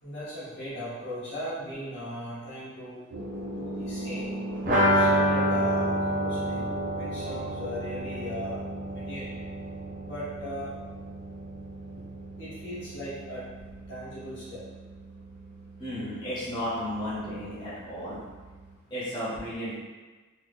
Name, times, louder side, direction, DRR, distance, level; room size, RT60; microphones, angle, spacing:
voice 1, 0.0-3.0 3.5-4.3 4.6-9.3 10.0-10.7 12.4-13.4 13.9-14.6, equal, 55° left, -10 dB, 1.1 m, -38 dB
sound 1, 3.1-18.8, right 1 dB, 90° right, 0.5 m, -39 dB
sound 2, 4.7-10.3 10.5-10.6 10.9-11.0, equal, 40° right, 0.7 m, -27 dB
voice 2, 15.8-18.2 18.9-19.7, equal, 20° left, -12 dB, 1.1 m, -33 dB
3.0 x 2.2 x 3.4 m, 1.3 s
head